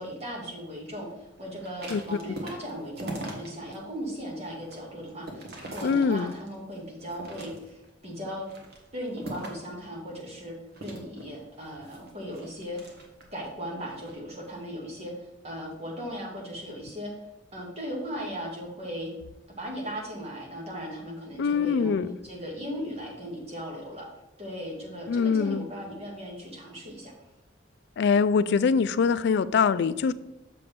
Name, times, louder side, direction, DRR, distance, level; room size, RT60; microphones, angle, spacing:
voice 1, 0.0-8.5 8.9-10.5 10.8-12.8 13.3-17.1 17.5-19.1 19.6-21.9 22.2-24.1 24.4-27.1, equal, 35° right, -3 dB, 2.0 m, -37 dB
sound 1, 1.6-3.8 4.2-6.6 7.0-7.9 8.4-9.7 10.7-13.4 13.9-14.2, right 1 dB, 55° right, 1.4 m, -41 dB
voice 2, 5.8-6.3 21.4-22.1 25.1-25.7 28.0-30.1, left 5 dB, 60° left, 15 dB, 0.3 m, -23 dB
6.8 x 6.5 x 3.6 m, 0.90 s
head